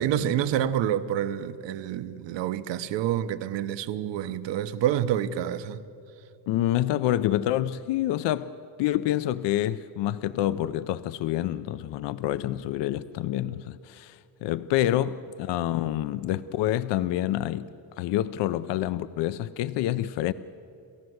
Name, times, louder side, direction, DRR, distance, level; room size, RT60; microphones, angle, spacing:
voice 1, 0.0-5.8, right 11 dB, 75° right, 1.1 m, -28 dB
voice 2, 6.5-8.5 8.8-17.7 18.0-20.3, left 13 dB, 70° left, 0.6 m, -27 dB
29.5 x 14.5 x 7.9 m
cardioid pair, 170°, 44 cm